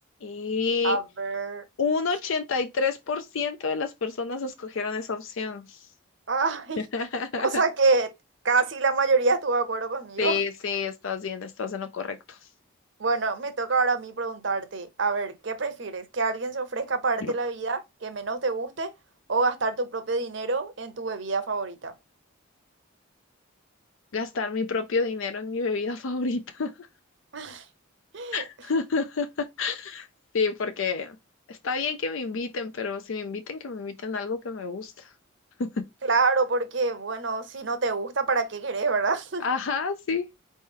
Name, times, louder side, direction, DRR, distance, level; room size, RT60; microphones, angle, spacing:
voice 1, 0.2-1.0 1.8-5.9 6.8-7.6 10.2-12.4 17.2-17.3 24.1-26.9 28.3-30.1 30.3-31.2 31.5-35.1 35.6-35.7 39.4-40.3, left 4 dB, 70° left, 0.5 m, -29 dB
voice 2, 0.8-1.6 6.3-6.8 7.4-8.1 8.4-10.4 13.0-18.9 19.3-21.9 27.3-27.6 28.1-28.4 36.1-39.4, right 3 dB, 60° right, 0.8 m, -26 dB
4.3 x 3.1 x 3.6 m
head